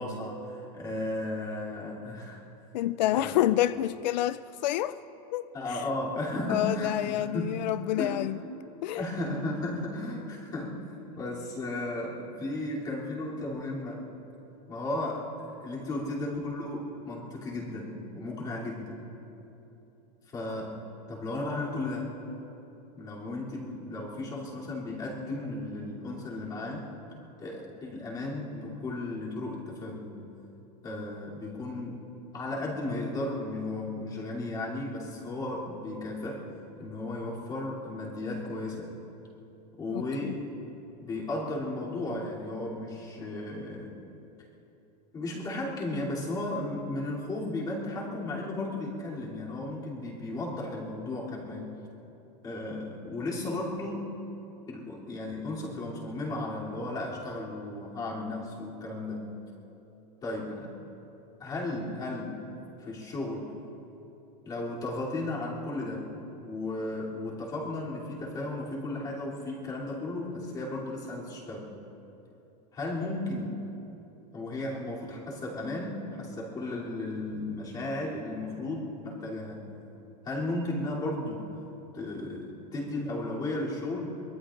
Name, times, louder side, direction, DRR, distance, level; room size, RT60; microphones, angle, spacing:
voice 1, 0.0-2.4 3.1-3.3 5.5-7.6 8.0-8.2 8.9-14.0 14.7-19.0 20.3-20.7 21.1-22.1 23.0-26.9 27.4-30.2 30.8-32.0 32.3-36.4 36.8-38.9 39.8-40.4 41.0-43.9 45.1-51.7 52.4-54.1 54.7-59.3 60.2-60.7 61.4-62.4 62.8-63.5 64.4-66.1 66.4-71.7 72.7-73.6 74.3-79.7 80.2-81.5 81.9-84.0, left 2 dB, 20° left, 3.1 m, -35 dB
voice 2, 2.7-5.0 5.3-5.8 6.5-8.4 8.8-9.0 39.9-40.3, left 13 dB, 85° left, 0.4 m, -28 dB
24.0 x 22.5 x 2.6 m
supercardioid pair, 170°, 21 cm